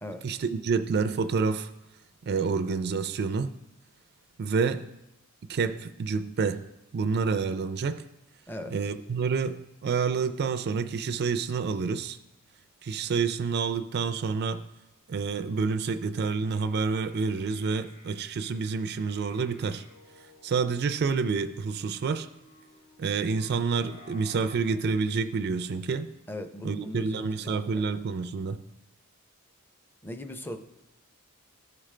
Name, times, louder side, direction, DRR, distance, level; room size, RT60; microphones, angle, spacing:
voice 1, 0.2-1.7 2.3-3.5 4.4-4.9 5.5-6.6 6.9-8.0 8.7-12.2 12.8-14.6 15.1-19.8 20.4-22.3 23.0-26.1 26.6-28.6, right 5 dB, 50° right, 10 dB, 0.4 m, -28 dB
sound 1, 16.3-24.8, left 2 dB, 85° left, 2.7 m, -55 dB
voice 2, 26.3-27.9 30.0-30.6, left 1 dB, 10° left, 6 dB, 0.6 m, -39 dB
14.5 x 5.0 x 3.2 m, 0.97 s
head